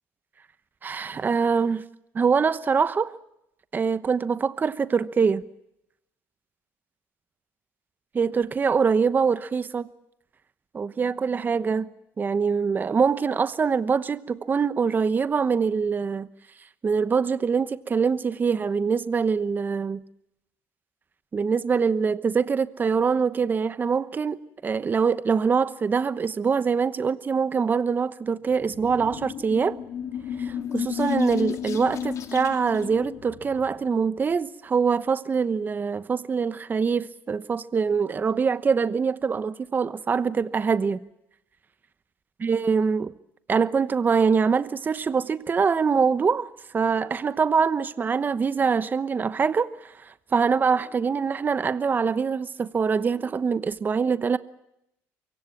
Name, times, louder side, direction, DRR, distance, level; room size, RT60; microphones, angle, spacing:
voice 1, 0.8-1.8 2.1-3.1 3.7-5.4 8.1-9.9 10.7-11.9 12.2-16.3 16.8-20.0 21.3-29.8 30.4-41.0 42.4-43.1 43.5-54.4, right 5 dB, 30° right, 1.0 m, -24 dB
sound 1, 28.5-33.9, left 8 dB, 55° left, 2.4 m, -32 dB
24.5 x 23.0 x 7.3 m
cardioid pair, 100°, 6 cm